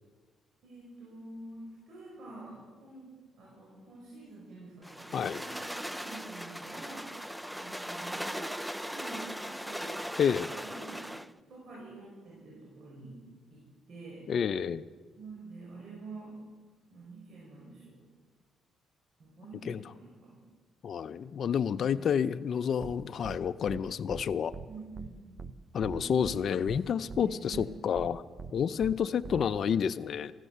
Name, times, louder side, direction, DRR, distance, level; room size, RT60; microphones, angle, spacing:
voice 1, 0.6-10.0 10.3-13.2 13.5-14.3 15.2-16.4 16.8-18.0 19.2-20.4 21.8-22.1 24.7-25.3 25.9-26.7 27.1-27.7, right 2 dB, 65° right, -5 dB, 5.9 m, -48 dB
sound 1, 4.8-11.3, equal, 5° right, 0.4 m, -39 dB
voice 2, 14.3-14.8 19.7-19.8 20.8-24.5 25.7-28.2 28.5-30.3, left 7 dB, 60° left, 12 dB, 0.5 m, -29 dB
sound 2, 22.8-22.9 23.2-23.4 23.7-23.8 24.1-24.2 24.5-24.7 25.0-25.1 25.4-25.5 25.8-26.4 26.7-26.8 27.1-27.2 27.5-27.7 28.0-28.1 28.4-28.5 28.8-28.9 29.2-29.5, right 5 dB, 40° right, 0.7 m, -42 dB
15.0 x 14.0 x 6.8 m, 1.4 s
cardioid pair, 90°, 0 cm